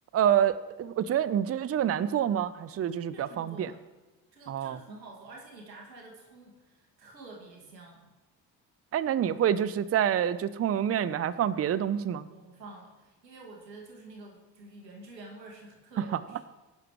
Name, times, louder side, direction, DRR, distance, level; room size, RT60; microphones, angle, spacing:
voice 1, 0.1-3.7 4.5-4.8 8.9-12.3 16.0-16.1, right 9 dB, 30° right, 16 dB, 0.7 m, -27 dB
voice 2, 3.1-3.8 4.3-8.1 12.3-16.4, right 2 dB, 90° right, 0 dB, 2.3 m, -49 dB
21.5 x 11.0 x 3.1 m, 1.1 s
figure-of-eight pair, 50°, 49 cm